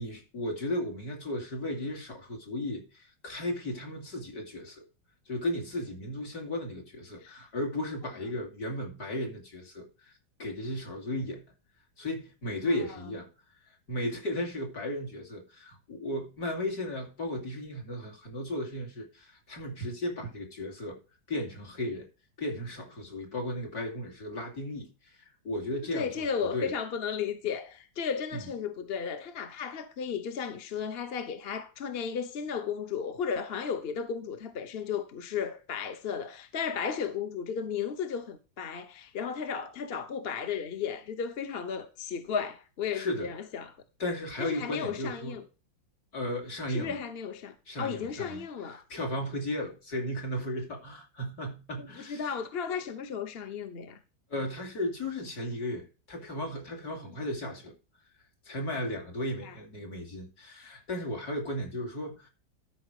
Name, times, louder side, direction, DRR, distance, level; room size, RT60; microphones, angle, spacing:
voice 1, 0.0-4.8 5.3-10.1 10.4-11.4 12.0-13.3 13.9-21.0 21.3-22.1 22.4-26.7 28.3-28.4 42.9-43.3 44.0-45.4 46.1-47.0 47.7-48.4 48.7-52.3 54.3-57.7 58.4-62.3, left 1 dB, 55° left, 3.4 m, -35 dB
voice 2, 25.9-43.7 44.4-45.4 46.7-48.8 51.8-54.0 59.4-59.5, left 7 dB, 40° left, 1.0 m, -34 dB
13.0 x 5.5 x 4.8 m
omnidirectional pair, 1.9 m